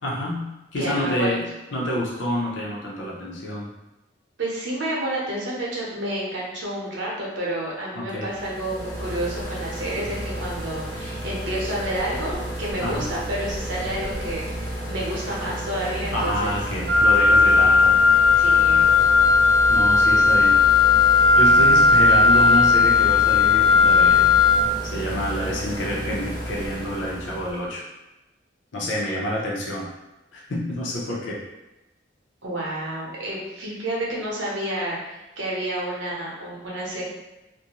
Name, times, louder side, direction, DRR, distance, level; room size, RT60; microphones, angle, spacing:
voice 1, 0.0-1.5 1.7-3.7 8.0-8.3 12.8-13.1 16.0-18.0 19.7-20.6 21.4-24.4 24.8-27.8 28.7-29.9 30.3-31.4, equal, 80° left, -4 dB, 0.7 m, -28 dB
voice 2, 0.8-1.3 4.4-16.6 18.4-18.9 29.0-29.1 32.4-37.0, right 1 dB, 90° right, -5 dB, 0.8 m, -30 dB
sound 1, 8.3-27.7, equal, 10° left, 0.8 m, -32 dB
Wind instrument woodwind instrument, 16.9-24.6, left 4 dB, 70° right, 0.5 m, -16 dB
2.5 x 2.2 x 2.9 m, 1.0 s
head